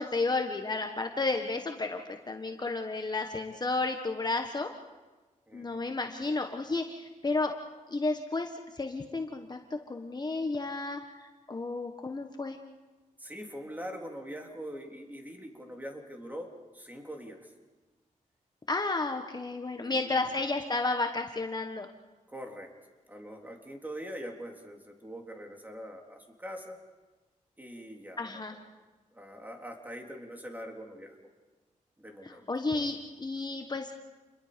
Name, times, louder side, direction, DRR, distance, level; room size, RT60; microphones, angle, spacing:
voice 1, 0.0-4.7 5.5-7.5 7.9-12.6 18.7-21.9 28.2-28.6 32.2-33.9, left 3 dB, 30° left, 4 dB, 1.4 m, -32 dB
voice 2, 5.5-5.8 13.2-16.5 16.7-17.5 19.8-20.2 22.3-22.7 23.1-26.8 27.6-28.6 29.1-31.2 32.0-32.4, equal, 15° right, 2 dB, 3.7 m, -43 dB
29.0 x 22.0 x 5.2 m, 1.2 s
cardioid pair, 80°, 14 cm